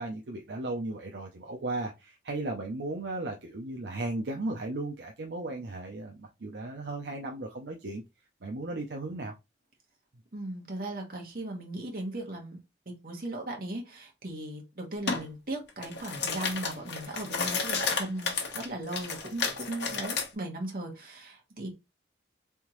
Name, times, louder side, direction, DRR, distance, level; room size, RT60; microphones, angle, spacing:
voice 1, 0.0-8.0 8.4-9.3, right 2 dB, 70° right, 0.6 m, -36 dB
voice 2, 10.3-12.6 12.9-21.7, right 1 dB, 50° right, 1.2 m, -37 dB
sound 1, 15.1-15.2 15.7-20.3, left 5 dB, 70° left, 1.0 m, -32 dB
3.6 x 3.5 x 3.0 m
head